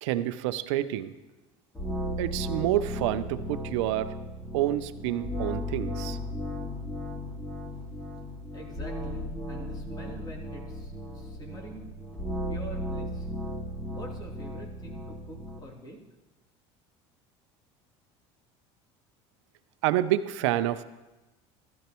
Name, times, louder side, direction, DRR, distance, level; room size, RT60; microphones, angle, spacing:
voice 1, 0.0-1.1 2.2-4.1 4.5-6.2 19.8-20.8, right 13 dB, 85° right, 12 dB, 0.6 m, -28 dB
sound 1, 1.7-15.6, equal, 10° left, 3.5 m, -35 dB
voice 2, 8.5-11.9 12.5-13.3 13.9-16.0, equal, 30° left, -2 dB, 3.1 m, -46 dB
15.0 x 12.5 x 3.0 m, 1.1 s
supercardioid pair, 100°, 15 cm